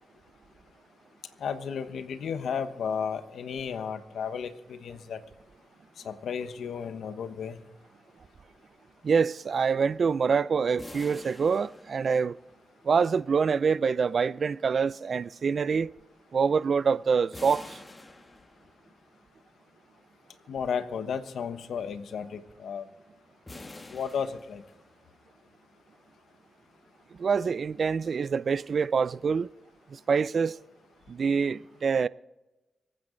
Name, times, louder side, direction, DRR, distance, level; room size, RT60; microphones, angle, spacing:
voice 1, 1.4-5.2 6.0-7.6 20.5-22.9 23.9-24.6, left 7 dB, 85° left, 1.1 m, -33 dB
voice 2, 9.0-12.4 12.8-15.9 16.3-17.8 27.2-29.5 29.9-30.6 31.1-32.1, right 5 dB, 65° right, 0.5 m, -25 dB
sound 1, 10.8-12.6 17.3-19.0 23.5-25.1, left 2 dB, 30° left, 1.6 m, -47 dB
25.5 x 9.0 x 3.9 m
supercardioid pair, 45°, 0 cm